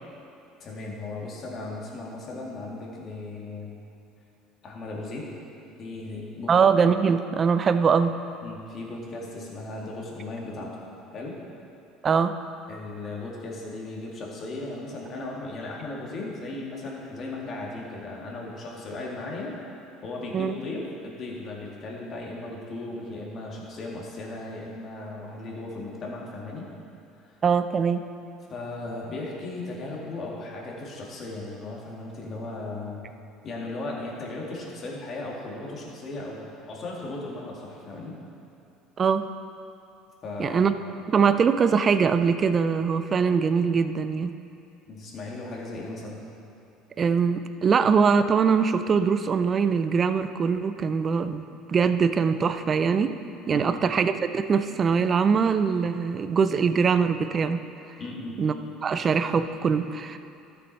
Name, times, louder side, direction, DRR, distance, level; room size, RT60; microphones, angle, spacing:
voice 1, 0.6-3.7 4.6-5.3 5.7-6.6 8.4-10.7 11.1-11.4 12.7-19.6 20.0-26.7 27.2-27.4 28.5-33.0 33.4-38.2 40.2-40.7 44.9-46.2 53.5-53.8 58.0-58.4, left 2 dB, 45° left, -3 dB, 2.2 m, -36 dB
voice 2, 6.5-8.1 12.0-12.4 20.3-20.5 27.4-28.0 39.0-39.3 40.4-40.7 41.1-44.3 47.0-53.1 53.5-57.6 58.4-58.5 58.8-60.2, right 6 dB, 35° right, 10 dB, 0.5 m, -22 dB
13.0 x 6.9 x 4.2 m, 2.6 s
supercardioid pair, 95°, 0 cm